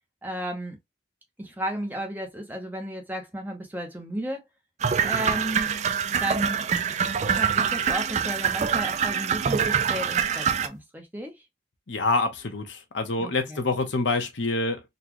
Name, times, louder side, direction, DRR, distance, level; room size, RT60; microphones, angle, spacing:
voice 1, 0.2-0.8 1.4-4.4 5.0-5.7 6.2-6.6 7.3-11.4 13.2-13.6, right 1 dB, 10° right, 0.7 m, -33 dB
sound 1, 4.8-10.7, right 7 dB, 35° right, 0.3 m, -25 dB
voice 2, 11.9-14.8, left 3 dB, 75° left, 0.9 m, -26 dB
4.0 x 2.3 x 2.9 m
head